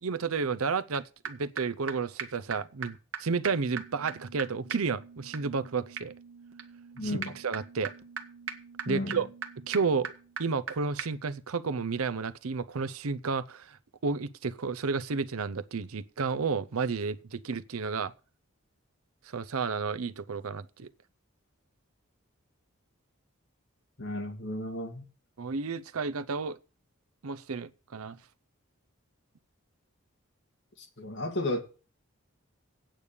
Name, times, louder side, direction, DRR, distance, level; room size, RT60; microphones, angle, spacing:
voice 1, 0.0-6.1 7.0-7.9 8.9-9.3 9.7-10.1 10.4-13.8 14.0-18.1 19.3-20.9 25.4-26.6 27.2-28.2, right 5 dB, 85° right, 0.7 m, -31 dB
sound 1, 0.9-1.0 1.2-1.3 1.6-1.7 1.9-2.0 2.2-2.3 2.5-2.6 2.8-2.9 3.1-3.2 3.4-10.7 11.0-11.1, right 6 dB, 70° right, 1.4 m, -40 dB
voice 2, 7.0-7.4 8.9-9.2 24.0-25.1 30.8-31.6, left 1 dB, 55° left, 2.0 m, -33 dB
9.0 x 6.8 x 8.4 m
head